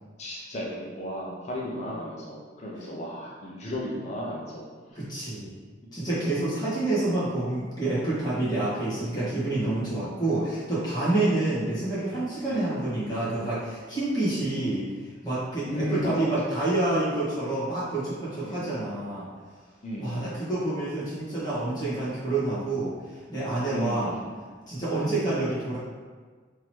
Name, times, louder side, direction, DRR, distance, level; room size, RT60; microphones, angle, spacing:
voice 1, 0.2-4.6 6.2-6.3 11.2-11.4 12.4-12.7 15.7-16.3 18.4-18.6 19.8-20.4 23.7-24.1 25.0-25.3, equal, 40° left, -5 dB, 0.6 m, -34 dB
voice 2, 4.9-5.5 5.9-14.8 15.2-19.3 20.0-22.9 23.3-24.1 24.7-25.8, right 2 dB, 20° left, -10 dB, 1.5 m, -28 dB
3.7 x 3.0 x 3.1 m, 1.5 s
head